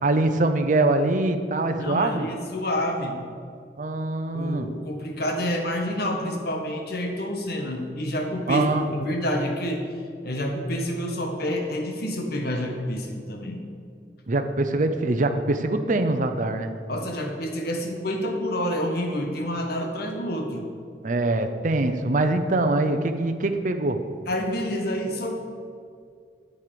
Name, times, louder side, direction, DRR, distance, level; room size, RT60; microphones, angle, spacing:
voice 1, 0.0-2.3 3.8-4.7 8.5-8.8 14.3-16.7 21.0-24.0, right 2 dB, 45° right, 7 dB, 0.7 m, -23 dB
voice 2, 1.8-3.2 4.3-9.9 10.2-13.6 16.9-20.7 24.3-25.3, equal, 60° left, 3 dB, 1.5 m, -28 dB
9.0 x 7.8 x 6.8 m, 2.3 s
head